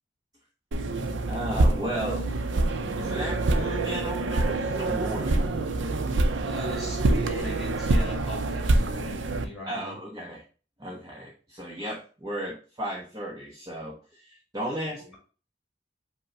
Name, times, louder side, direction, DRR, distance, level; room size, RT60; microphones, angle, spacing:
sound 1, 0.7-9.4, right 2 dB, 80° right, 0.5 m, -26 dB
voice 1, 1.2-2.3 3.0-5.4 9.7-10.4 10.8-15.1, right 1 dB, 20° right, -3 dB, 0.7 m, -34 dB
voice 2, 6.4-10.0 14.9-15.2, equal, ahead, -3 dB, 2.1 m, -38 dB
5.2 x 2.1 x 4.7 m, 0.37 s
head